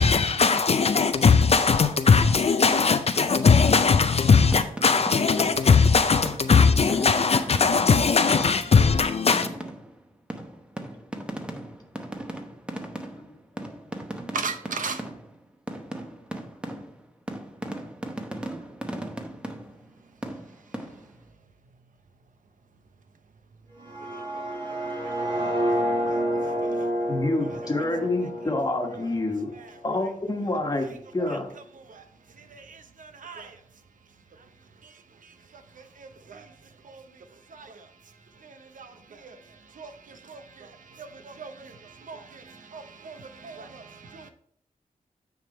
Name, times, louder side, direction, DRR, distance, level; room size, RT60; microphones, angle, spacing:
voice 1, 0.0-9.5, left 5 dB, 45° left, 0.4 m, -19 dB
sound 1, 4.5-8.0 8.4-8.8 9.3-15.4 15.7-20.0 20.2-21.2, right 1 dB, 5° right, 0.8 m, -38 dB
voice 2, 14.3-15.1 24.1-24.2 26.1-26.9 29.5-29.7 31.2-31.4 31.7-32.0 32.4-33.6 34.8-36.5 36.8-37.9 38.4-44.3, right 4 dB, 70° right, 0.8 m, -40 dB
sound 2, 23.8-29.7, right 1 dB, 35° right, 1.6 m, -29 dB
voice 3, 27.1-29.5 29.8-31.5, left 2 dB, 30° left, 1.4 m, -28 dB
9.2 x 3.6 x 4.3 m
wide cardioid pair, 110°, 14 cm